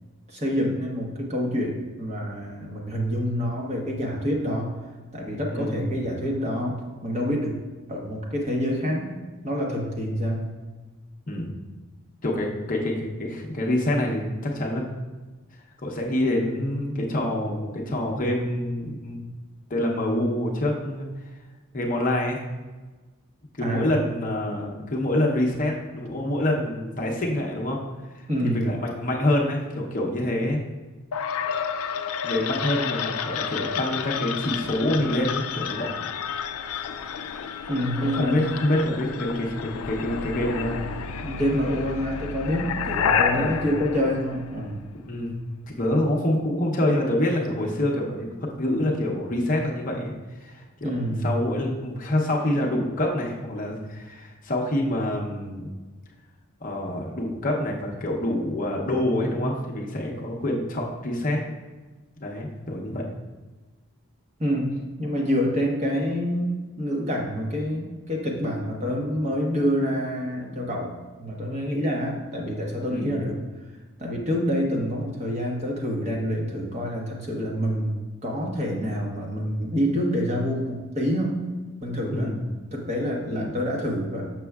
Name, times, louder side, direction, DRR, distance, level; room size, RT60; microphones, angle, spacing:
voice 1, 0.3-4.7 5.1-6.8 7.0-7.6 7.9-9.1 9.4-10.4 23.6-23.9 28.3-28.6 37.7-38.5 41.2-44.8 50.8-51.3 64.4-64.7 65.0-66.5 66.8-73.3 74.0-78.0 78.2-81.4 81.8-82.3 82.7-84.3, equal, 30° right, -1 dB, 1.0 m, -27 dB
voice 2, 5.5-5.9 11.3-11.6 12.2-14.8 15.8-19.2 19.7-21.1 21.7-22.4 23.6-27.8 28.1-30.6 32.2-35.9 38.0-40.8 43.3-43.6 45.0-45.4 45.7-55.7 56.6-61.4 62.2-63.0 72.9-73.2 82.1-82.4 83.3-83.5, left 1 dB, 40° left, -1 dB, 0.7 m, -26 dB
sound 1, 31.1-45.0, left 6 dB, 75° left, 0.4 m, -30 dB
6.6 x 6.1 x 2.3 m, 1.3 s
head